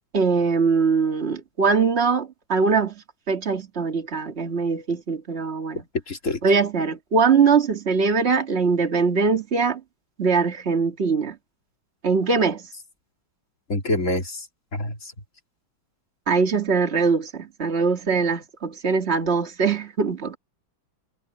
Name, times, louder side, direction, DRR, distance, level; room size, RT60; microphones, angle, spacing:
voice 1, 0.1-2.9 3.3-5.8 6.4-9.8 10.2-11.4 12.0-12.7 16.3-20.4, right 5 dB, 30° right, 2.3 m, -22 dB
voice 2, 6.1-6.4 13.7-14.4 14.7-15.1, left 2 dB, 40° left, 3.5 m, -26 dB
omnidirectional pair, 2.2 m